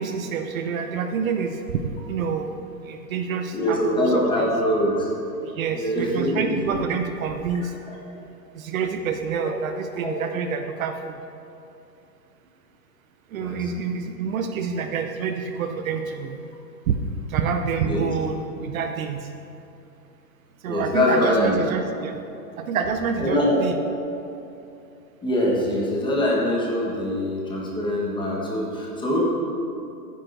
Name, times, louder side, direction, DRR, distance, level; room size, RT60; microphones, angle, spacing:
voice 1, 0.0-1.8 2.1-2.5 2.8-4.5 5.4-7.7 8.5-11.2 13.3-16.4 16.9-17.0 17.3-19.2 20.6-22.2 22.6-23.8, right 6 dB, 55° right, 6 dB, 0.7 m, -27 dB
voice 2, 3.5-5.1 5.7-6.6 9.4-9.5 10.0-10.2 13.4-13.6 17.8-18.1 20.7-21.5 23.2-23.6 25.2-29.2, left 1 dB, 10° left, -4 dB, 1.2 m, -23 dB
13.0 x 9.5 x 2.6 m, 2.7 s
hypercardioid pair, 140°, 49 cm